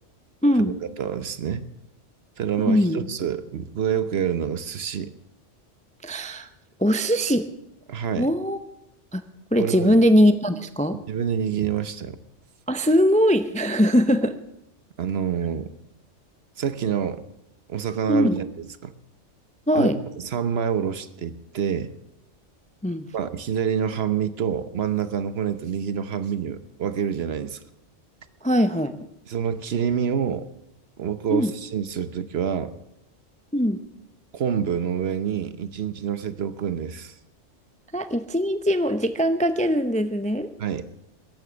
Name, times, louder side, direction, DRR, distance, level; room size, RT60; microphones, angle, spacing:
voice 1, 0.4-0.7 2.6-3.1 6.0-6.5 6.8-7.5 8.2-8.6 9.1-9.2 9.5-11.0 12.7-14.4 18.1-18.4 19.7-20.0 22.8-23.1 28.4-28.9 31.3-31.5 33.5-33.8 37.9-40.5, equal, 10° left, 10 dB, 0.5 m, -21 dB
voice 2, 1.0-1.7 2.4-5.1 7.9-8.3 9.6-10.0 11.1-12.2 15.0-15.7 16.6-17.2 17.7-18.5 18.8-18.9 19.7-21.9 23.1-27.6 29.3-30.5 31.0-32.7 34.3-37.1 40.6-40.9, right 8 dB, 60° right, 13 dB, 1.0 m, -27 dB
14.0 x 11.5 x 6.9 m, 0.83 s
omnidirectional pair, 1.2 m